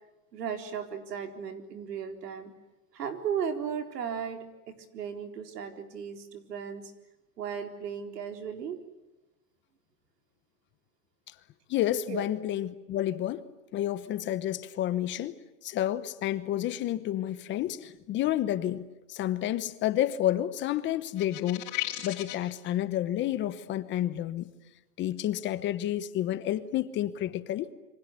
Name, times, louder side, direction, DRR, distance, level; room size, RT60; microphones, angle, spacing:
voice 1, 0.3-2.5 2.9-6.9 7.4-8.8 12.1-12.2, right 7 dB, 90° right, 4.2 m, -36 dB
voice 2, 11.7-13.4 13.7-15.3 15.6-21.7 22.0-24.5 25.0-27.7, left 12 dB, 25° left, 1.0 m, -30 dB
sound 1, 21.2-22.5, left 16 dB, 40° left, 3.9 m, -35 dB
27.5 x 25.0 x 8.3 m
supercardioid pair, 150°, 47 cm